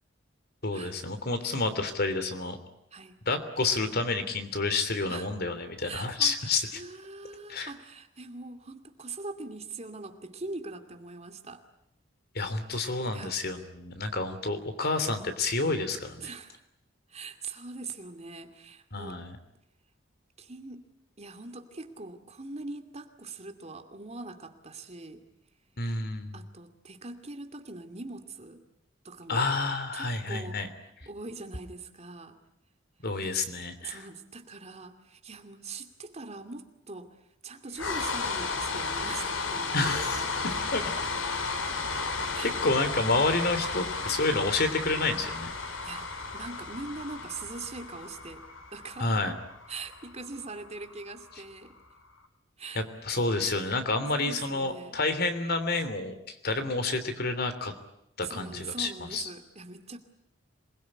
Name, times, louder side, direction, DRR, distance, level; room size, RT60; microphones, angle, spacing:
voice 1, 0.6-2.6 3.3-6.8 7.5-7.7 12.3-16.3 18.9-19.3 25.8-26.4 29.3-30.7 33.0-34.0 39.7-40.2 40.7-40.8 42.4-45.5 49.0-49.3 52.7-57.7 58.2-59.3, left 3 dB, 55° left, 9 dB, 3.1 m, -29 dB
voice 2, 5.8-11.6 13.0-13.4 16.2-16.6 17.1-19.2 20.4-20.9 21.2-25.2 26.3-28.7 29.0-29.5 29.9-30.6 31.1-32.4 33.2-33.4 33.8-37.2 37.4-40.6 42.3-42.5 45.7-48.4 48.7-49.1 49.7-51.8 52.6-52.8 54.1-55.0 58.2-60.0, right 3 dB, 35° right, 6 dB, 2.5 m, -42 dB
sound 1, 37.7-51.9, left 4 dB, 85° left, 3.4 m, -34 dB
27.0 x 21.5 x 10.0 m, 0.81 s
head